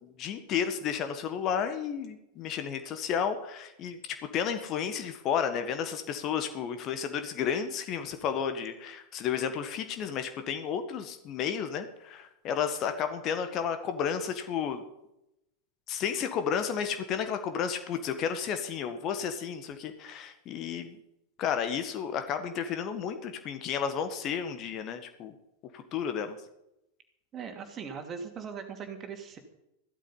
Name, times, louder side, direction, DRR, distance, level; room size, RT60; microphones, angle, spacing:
voice 1, 0.0-14.8 15.9-21.0 21.4-25.3 25.7-26.4, left 7 dB, 35° left, 8 dB, 1.6 m, -32 dB
voice 2, 27.3-29.4, right 6 dB, 25° right, 5 dB, 2.8 m, -40 dB
15.5 x 12.5 x 5.6 m, 0.84 s
figure-of-eight pair, 90°, 0 cm